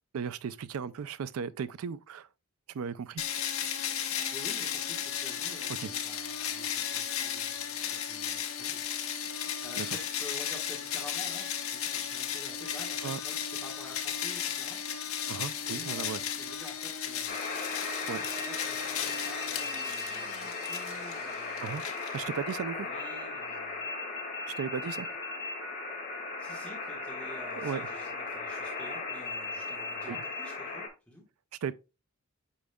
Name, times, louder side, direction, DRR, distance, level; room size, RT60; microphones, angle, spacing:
voice 1, 0.1-2.3 2.7-3.3 5.8-5.9 9.8-9.9 13.0-13.2 15.3-16.2 18.1-18.2 21.6-22.9 24.5-25.1 27.6-27.9 30.1-30.2 31.6-31.7, right 6 dB, 75° right, 0.4 m, -36 dB
sound 1, 3.2-22.5, left 9 dB, 75° left, 0.9 m, -35 dB
voice 2, 4.0-14.8 15.6-17.7 18.0-21.7 22.7-23.9 26.4-31.2, left 1 dB, 5° left, 1.4 m, -50 dB
sound 2, 17.3-30.9, left 3 dB, 45° left, 1.6 m, -37 dB
8.4 x 5.1 x 2.2 m
head